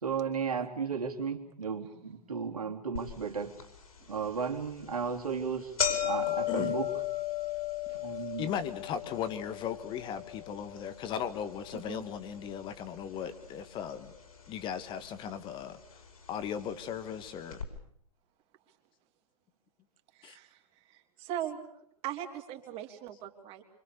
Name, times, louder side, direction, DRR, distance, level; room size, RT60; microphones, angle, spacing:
voice 1, 0.0-3.5 4.1-5.7 6.0-6.9 8.0-8.5, right 6 dB, 70° right, 3 dB, 3.3 m, -34 dB
sound 1, 3.0-3.1 3.6-3.7 4.5-4.7 5.0-5.2 5.4-13.6 13.9-14.6 15.4-15.5 16.5-16.6 16.8-16.9 17.5-17.6, left 10 dB, 65° left, 5.4 m, -36 dB
voice 2, 6.3-6.8 8.4-14.1 14.5-16.0 16.3-17.6 20.2-20.4, left 8 dB, 25° left, 11 dB, 1.7 m, -37 dB
voice 3, 11.7-12.0 20.1-20.6 20.9-21.6 22.0-23.6, right 11 dB, 30° right, 4 dB, 3.4 m, -40 dB
27.0 x 25.5 x 6.9 m, 0.69 s
figure-of-eight pair, 110°, 20 cm